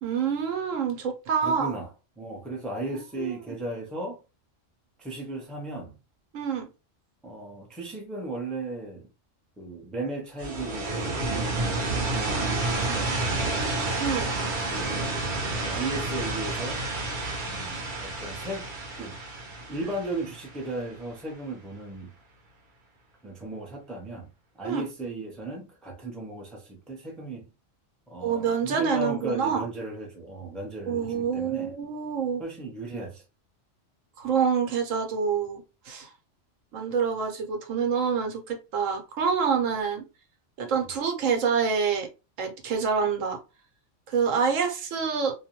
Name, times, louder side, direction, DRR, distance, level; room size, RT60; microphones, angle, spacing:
voice 1, 0.0-1.8 2.9-3.3 6.3-6.7 14.0-14.3 24.6-24.8 28.2-29.7 30.9-32.4 34.2-36.1 36.7-40.0 40.6-42.1 42.4-43.4 44.1-45.3, right 6 dB, 85° right, 1.1 m, -27 dB
voice 2, 1.4-1.9 2.2-4.2 5.0-6.0 7.2-9.1 9.6-13.6 14.4-16.8 17.4-18.7 19.0-19.2 19.7-22.1 23.2-24.3 24.5-27.5 28.1-31.7 32.4-33.2, right 2 dB, ahead, 0.4 m, -36 dB
sound 1, 10.4-21.1, right 2 dB, 50° right, 0.7 m, -30 dB
2.5 x 2.2 x 2.8 m
omnidirectional pair, 1.3 m